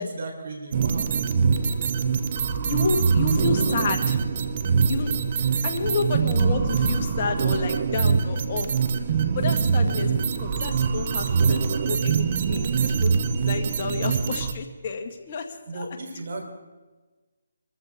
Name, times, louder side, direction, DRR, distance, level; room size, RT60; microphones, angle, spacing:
voice 1, 0.0-1.4 5.5-5.7 10.0-10.1 15.7-16.4, right 2 dB, 60° right, 4 dB, 3.7 m, -36 dB
sound 1, 0.7-14.5, right 6 dB, 40° right, 0.9 m, -23 dB
voice 2, 2.6-4.2 4.9-5.1 5.6-8.8 9.3-13.1 13.4-15.5 15.7-15.9, left 5 dB, 40° left, 4 dB, 1.6 m, -30 dB
25.0 x 14.0 x 3.6 m, 1.3 s
hypercardioid pair, 160°, 0 cm